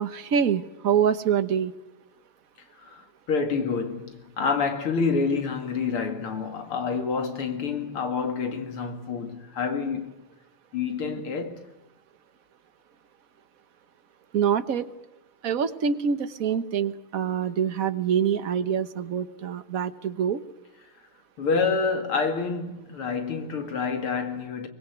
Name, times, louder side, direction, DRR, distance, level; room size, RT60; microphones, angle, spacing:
voice 1, 0.0-1.7 14.3-14.9 15.4-20.4, right 8 dB, 50° right, 1.2 m, -25 dB
voice 2, 2.8-10.1 10.7-11.6 21.4-24.7, left 5 dB, 80° left, 3.1 m, -28 dB
24.0 x 20.5 x 8.1 m
omnidirectional pair, 2.4 m